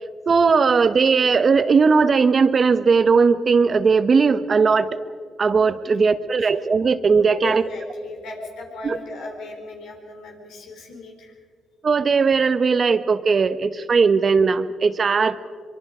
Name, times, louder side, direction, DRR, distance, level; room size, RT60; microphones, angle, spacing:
voice 1, 0.3-4.9 5.4-7.6 8.8-9.0 11.8-15.4, right 5 dB, 40° right, 12 dB, 1.0 m, -18 dB
voice 2, 7.4-11.4, left 3 dB, 85° left, 1 dB, 4.6 m, -37 dB
24.0 x 23.0 x 5.0 m, 2.1 s
cardioid pair, 90°, 0 cm